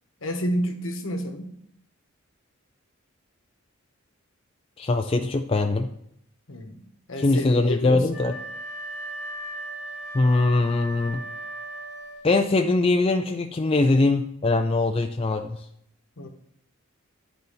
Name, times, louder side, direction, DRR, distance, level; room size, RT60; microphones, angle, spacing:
voice 1, 0.2-1.5 6.5-6.8 7.1-8.2 16.2-16.3, equal, 70° left, 5 dB, 1.1 m, -30 dB
voice 2, 4.8-5.9 7.2-8.3 10.1-11.2 12.2-15.6, left 2 dB, 25° left, 5 dB, 0.4 m, -22 dB
Wind instrument woodwind instrument, 8.1-12.5, right 1 dB, 5° right, 2.9 m, -37 dB
10.5 x 4.1 x 5.5 m, 0.72 s
head